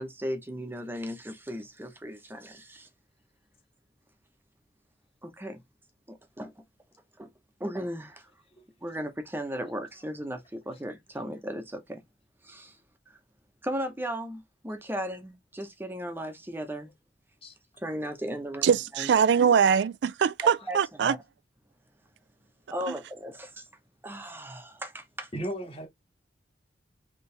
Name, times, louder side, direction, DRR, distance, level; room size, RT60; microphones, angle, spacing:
voice 1, 0.0-2.9 5.2-5.6 6.1-6.6 7.2-7.3 7.6-8.3 8.8-12.0 12.4-12.8 13.6-16.9 17.8-19.1 20.4-21.2 22.7-23.7 24.0-25.3, equal, 10° right, 0.8 m, -36 dB
voice 2, 18.6-21.2, right 7 dB, 70° right, 0.3 m, -22 dB
voice 3, 25.3-25.9, right 1 dB, 30° left, 1.5 m, -37 dB
4.3 x 3.0 x 3.3 m
head